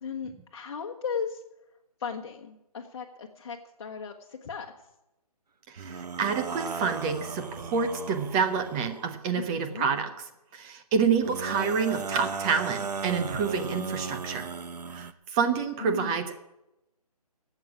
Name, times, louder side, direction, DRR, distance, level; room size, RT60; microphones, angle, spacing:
voice 1, 0.0-1.4 2.0-4.7 9.4-9.9 13.5-13.8 15.8-16.2, left 6 dB, 40° left, 1 dB, 1.1 m, -36 dB
voice 2, 5.7-10.1 10.5-14.5 14.9-16.4, right 6 dB, 10° right, 8 dB, 0.5 m, -28 dB
sound 1, 5.8-9.2 11.2-15.1, right 5 dB, 85° right, 0.9 m, -36 dB
12.5 x 8.1 x 9.6 m, 0.91 s
hypercardioid pair, 160°, 20 cm